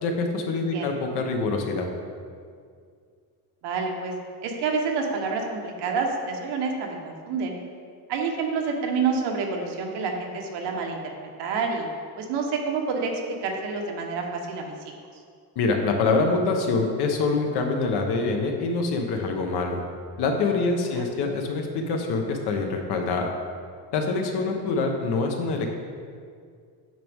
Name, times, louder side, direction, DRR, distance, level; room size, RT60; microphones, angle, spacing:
voice 1, 0.0-1.9 15.5-19.8 20.2-23.3 23.9-25.7, left 3 dB, 65° left, 3 dB, 1.2 m, -25 dB
voice 2, 0.5-0.9 3.6-4.1 4.4-7.5 8.1-11.1 11.4-11.9 12.2-14.7 20.9-21.3 24.4-24.8, right 4 dB, 70° right, 1 dB, 1.3 m, -28 dB
9.2 x 6.8 x 3.6 m, 2.1 s
cardioid pair, 170°, 43 cm